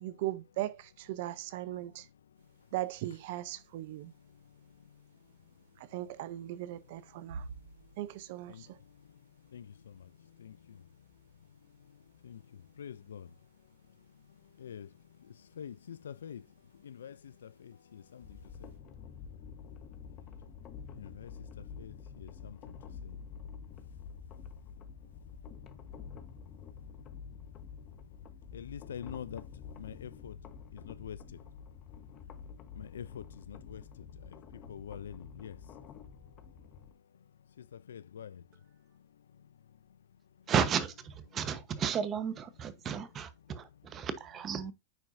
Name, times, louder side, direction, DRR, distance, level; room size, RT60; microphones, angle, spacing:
voice 1, 0.0-2.1 2.7-4.1 5.8-7.5 8.0-8.8, right 15 dB, 65° right, 0.6 m, -38 dB
voice 2, 1.7-2.7 3.8-6.1 6.5-6.6 6.9-8.0 8.5-40.5 41.3-41.4 43.4-43.6 44.0-44.1 44.6-44.7, left 8 dB, 90° left, 0.4 m, -50 dB
sound 1, 2.3-18.8, right 4 dB, 85° right, 2.5 m, -57 dB
sound 2, 18.2-36.9, left 6 dB, 40° left, 1.1 m, -48 dB
voice 3, 40.5-44.7, right 7 dB, 30° right, 1.0 m, -33 dB
9.1 x 4.5 x 2.6 m
hypercardioid pair, 115°, 0 cm